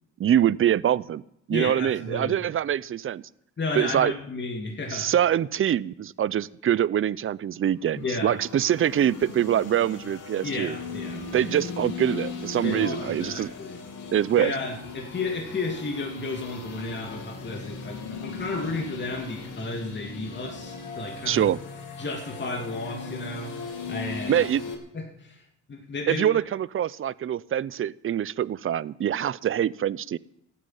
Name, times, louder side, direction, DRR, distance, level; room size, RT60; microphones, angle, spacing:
voice 1, 0.2-1.2 1.5-3.2 3.7-4.1 4.9-10.8 11.3-13.5 14.1-14.5 21.3-21.6 24.3-24.6 26.1-30.2, right 10 dB, 45° right, 20 dB, 0.6 m, -24 dB
voice 2, 1.5-2.4 3.6-5.1 8.0-8.4 10.4-11.5 12.6-13.8 14.4-21.5 22.0-24.5 24.9-26.2, left 3 dB, 35° left, 1 dB, 2.6 m, -33 dB
sound 1, 7.8-24.8, left 4 dB, 85° left, 3.0 m, -38 dB
15.0 x 9.3 x 9.3 m, 0.76 s
cardioid pair, 90°, 30 cm